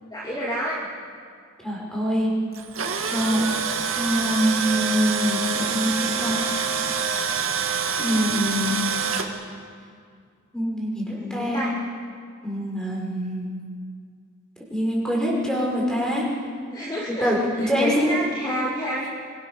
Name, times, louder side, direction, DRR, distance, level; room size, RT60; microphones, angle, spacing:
voice 1, 0.1-0.8 11.1-11.7 16.7-19.1, right 1 dB, 20° left, -5 dB, 2.8 m, -29 dB
voice 2, 1.6-2.3 3.1-3.5 3.9-6.4 8.0-8.7 10.5-11.7 12.4-13.5 14.7-16.3 17.1-18.2 18.4-18.6, equal, 5° left, -3 dB, 5.9 m, -24 dB
Tools, 2.5-9.3, right 6 dB, 75° right, 2.2 m, -26 dB
24.5 x 23.5 x 6.6 m, 2.1 s
head